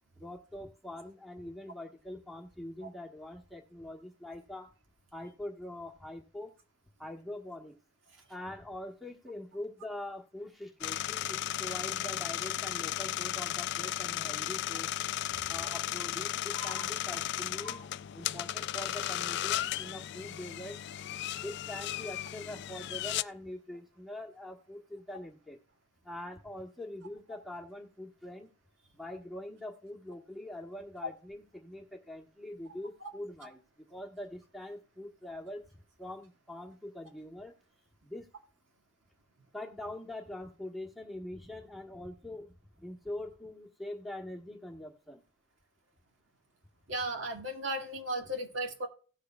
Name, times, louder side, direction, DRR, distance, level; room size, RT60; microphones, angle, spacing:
voice 1, 0.2-4.7 5.1-6.5 7.0-7.8 8.3-14.9 15.5-17.8 18.1-20.8 21.3-25.6 26.0-28.5 28.9-33.6 33.9-35.6 36.0-37.5 38.0-38.3 39.5-45.2 46.9-47.0, left 1 dB, ahead, -1 dB, 1.3 m, -43 dB
sound 1, 10.8-23.2, left 12 dB, 55° left, 0.3 m, -35 dB
voice 2, 16.5-16.9 17.6-17.8 46.9-48.9, right 1 dB, 65° right, 4 dB, 1.9 m, -36 dB
17.0 x 6.7 x 2.3 m, 0.39 s
head